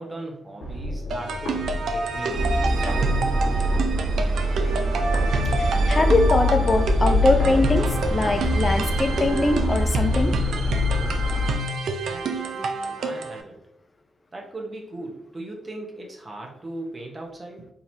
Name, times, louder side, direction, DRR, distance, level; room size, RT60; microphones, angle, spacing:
voice 1, 0.0-2.5 2.8-3.6 12.1-13.6 14.3-17.7, right 2 dB, 40° right, 0 dB, 1.0 m, -38 dB
sound 1, 0.6-9.6, left 1 dB, 90° left, 1.5 m, -31 dB
sound 2, 1.1-13.4, right 3 dB, 75° right, 0.4 m, -29 dB
sound 3, 2.3-11.6, equal, 15° right, 1.3 m, -24 dB
voice 2, 5.5-10.3, left 2 dB, 35° left, 6 dB, 0.5 m, -22 dB
3.9 x 2.9 x 2.7 m, 0.74 s
supercardioid pair, 50°, 0 cm